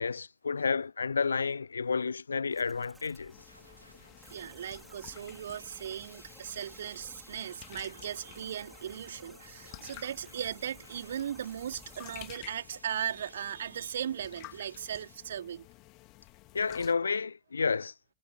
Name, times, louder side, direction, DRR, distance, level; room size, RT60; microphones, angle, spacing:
voice 1, 0.0-3.3 16.5-17.9, left 5 dB, 75° left, 0.8 m, -30 dB
sound 1, 2.5-12.4, right 2 dB, 10° right, 3.8 m, -56 dB
sound 2, 3.3-16.9, left 22 dB, 40° left, 2.3 m, -53 dB
sound 3, 3.4-15.1, equal, 90° right, 4.0 m, -56 dB
voice 2, 4.3-15.7, right 9 dB, 65° right, 3.4 m, -38 dB
figure-of-eight pair, 90°, 0 cm